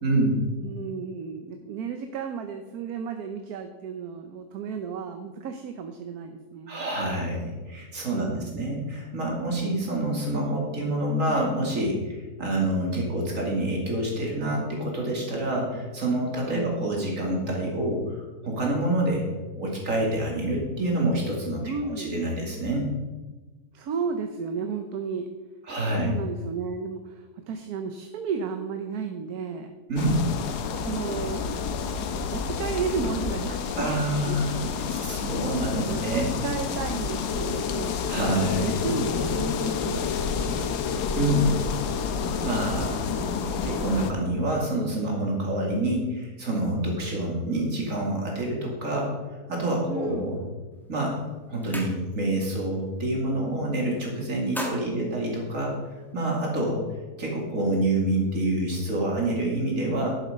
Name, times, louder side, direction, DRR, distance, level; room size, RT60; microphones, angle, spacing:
voice 1, 0.0-0.4 6.7-19.3 19.6-21.6 22.0-22.9 25.7-26.1 29.9-30.2 33.7-34.6 34.9-36.3 38.1-38.8 41.1-41.5 42.4-43.2 43.6-50.4 50.9-51.2 51.5-55.7 56.1-56.8 57.2-60.2, right 1 dB, 55° right, -1 dB, 2.9 m, -27 dB
voice 2, 0.6-6.9 8.1-8.5 16.5-16.9 21.6-22.1 23.7-25.3 26.0-29.7 30.8-31.5 32.3-35.2 35.6-38.0 38.6-40.1 40.5-41.1 42.2-42.5 49.9-50.4 54.6-55.2, right 6 dB, 70° right, 6 dB, 1.3 m, -34 dB
sound 1, 30.0-44.1, left 5 dB, 85° left, 1.4 m, -30 dB
sound 2, 37.3-45.6, left 8 dB, 60° left, 0.8 m, -36 dB
sound 3, 50.7-50.9 51.3-52.4 52.8-53.0 53.3-53.9 54.2-56.1, left 1 dB, ahead, 1.3 m, -38 dB
11.0 x 7.7 x 5.1 m, 1.2 s
omnidirectional pair, 1.7 m